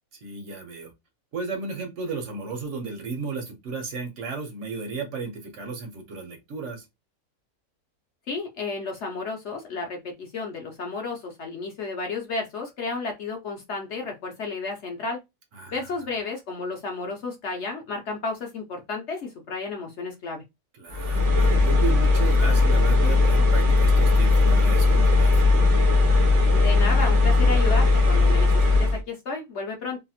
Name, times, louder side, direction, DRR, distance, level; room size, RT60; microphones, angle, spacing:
voice 1, 0.1-0.9 1.3-6.9 15.5-15.9 20.7-25.4, right 4 dB, 60° right, 1.0 m, -34 dB
voice 2, 8.3-15.2 15.7-20.4 26.5-30.0, left 4 dB, 60° left, 0.8 m, -32 dB
sound 1, 20.9-29.0, left 3 dB, 30° right, 0.7 m, -18 dB
2.8 x 2.8 x 2.3 m
omnidirectional pair, 1.6 m